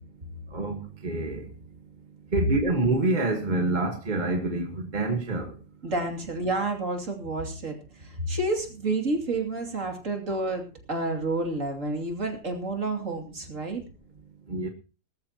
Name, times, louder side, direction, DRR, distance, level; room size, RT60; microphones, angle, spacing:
voice 1, 0.5-1.4 2.3-5.5 14.5-14.7, right 2 dB, 30° right, 1.5 m, -27 dB
voice 2, 5.8-13.8, right 2 dB, 50° right, 3.0 m, -30 dB
19.0 x 14.0 x 2.9 m
omnidirectional pair, 1.8 m